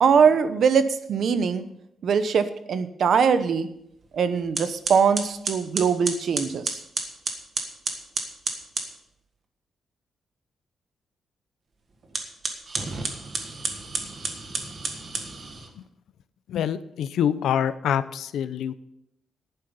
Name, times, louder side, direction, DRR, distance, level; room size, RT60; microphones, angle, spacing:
voice 1, 0.0-1.6 2.0-3.7 4.1-6.8, right 6 dB, 55° right, 11 dB, 0.9 m, -21 dB
sound 1, 4.0-4.2 4.5-8.9 12.0-15.7, right 3 dB, 35° right, 1.6 m, -31 dB
voice 2, 16.5-18.7, left 9 dB, 85° left, 14 dB, 0.6 m, -25 dB
11.5 x 9.3 x 5.5 m, 0.78 s
wide cardioid pair, 160°, 0 cm